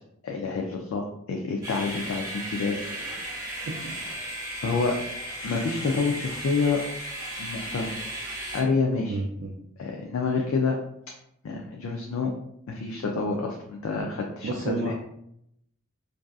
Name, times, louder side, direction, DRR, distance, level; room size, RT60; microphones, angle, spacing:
voice 1, 0.2-3.2 4.6-5.0 5.4-6.8 7.4-7.9 8.5-9.2 9.8-10.8 11.4-12.3 12.7-14.9, left 4 dB, 70° left, 0 dB, 0.3 m, -28 dB
sound 1, 1.6-8.6, right 1 dB, 15° right, 0.8 m, -35 dB
voice 2, 2.6-3.2 3.6-3.9 5.9-6.1 9.1-9.5 14.4-14.9, right 2 dB, 55° right, -2 dB, 0.3 m, -33 dB
2.6 x 2.3 x 2.3 m, 0.75 s
head